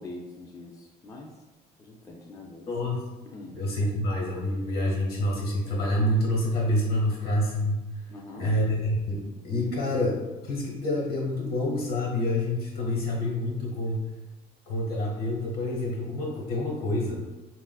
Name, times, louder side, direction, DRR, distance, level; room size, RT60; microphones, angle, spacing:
voice 1, 0.0-1.4 1.8-2.7 3.2-3.8 8.1-8.6, left 2 dB, 20° left, 0 dB, 0.3 m, -43 dB
voice 2, 2.7-3.0 3.5-7.8 8.4-10.2 10.4-14.1 14.7-17.3, left 1 dB, 65° left, -1 dB, 1.1 m, -27 dB
3.7 x 2.4 x 2.3 m, 1.1 s
cardioid pair, 110°, 17 cm